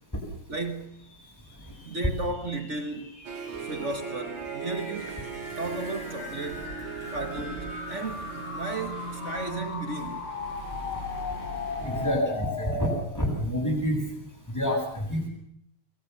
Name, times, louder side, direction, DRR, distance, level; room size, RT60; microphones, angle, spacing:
voice 1, 0.5-1.1 1.8-3.2 3.6-5.3 5.6-6.8 7.1-10.3, right 2 dB, 45° right, 0.9 m, -34 dB
sound 1, 1.1-13.0, left 3 dB, 45° left, 5.1 m, -38 dB
Harp, 3.2-9.5, right 7 dB, 60° right, 1.2 m, -39 dB
sound 2, 4.9-12.1, right 2 dB, 15° right, 8.0 m, -42 dB
voice 2, 11.8-12.9 13.1-14.0 14.5-15.3, equal, 5° left, 7.6 m, -27 dB
28.0 x 22.0 x 7.0 m
omnidirectional pair, 4.0 m